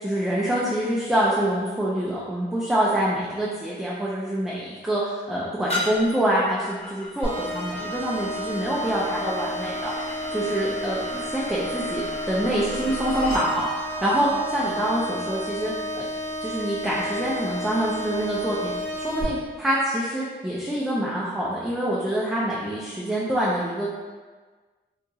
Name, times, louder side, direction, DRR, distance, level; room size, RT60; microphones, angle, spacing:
voice 1, 0.0-9.9 10.3-16.1 16.4-18.7 19.0-23.9, right 1 dB, 5° right, -7 dB, 0.3 m, -26 dB
sound 1, 5.7-13.5, left 1 dB, 35° left, 0.7 m, -36 dB
sound 2, 7.2-19.2, equal, 30° right, 0.8 m, -32 dB
3.8 x 2.7 x 2.3 m, 1.4 s
wide cardioid pair, 150°, 19 cm